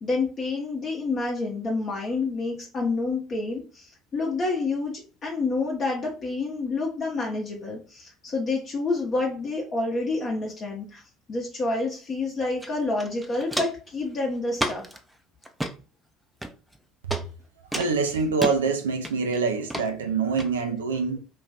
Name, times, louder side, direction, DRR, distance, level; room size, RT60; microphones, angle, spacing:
voice 1, 0.0-4.9 5.2-11.0 11.3-14.8, left 3 dB, 40° left, 0.7 m, -28 dB
Walk footsteps, 12.6-12.7 13.0-13.9 14.6-15.0 15.4-15.7 16.4-16.8 17.1-17.2 17.7-18.6 19.0-19.4 19.7-19.9 20.4-20.5, right 1 dB, 5° right, 0.4 m, -30 dB
voice 2, 17.7-21.2, right 4 dB, 80° right, 0.4 m, -25 dB
2.5 x 2.2 x 3.4 m
figure-of-eight pair, 60°, 0 cm